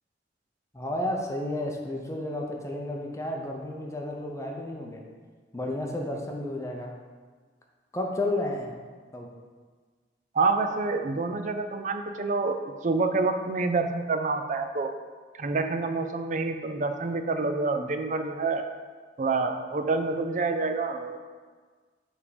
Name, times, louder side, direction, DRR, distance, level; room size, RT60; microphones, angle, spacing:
voice 1, 0.7-5.0 5.5-7.0 7.9-8.7 9.1-9.3, left 1 dB, 15° left, 0 dB, 0.6 m, -32 dB
voice 2, 10.3-14.9 15.4-18.7 19.2-21.2, right 3 dB, 45° right, 7 dB, 0.4 m, -27 dB
7.2 x 3.5 x 5.0 m, 1.5 s
head